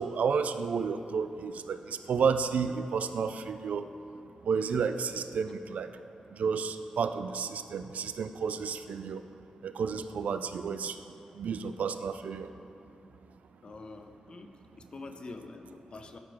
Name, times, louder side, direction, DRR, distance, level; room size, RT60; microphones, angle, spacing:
voice 1, 0.0-3.9 4.4-6.0 6.3-9.3 9.6-11.0 11.3-12.5, right 6 dB, 75° right, 10 dB, 0.3 m, -31 dB
voice 2, 13.6-16.2, left 3 dB, 40° left, 6 dB, 0.5 m, -46 dB
13.0 x 4.8 x 3.8 m, 2.8 s
wide cardioid pair, 155°, 2 cm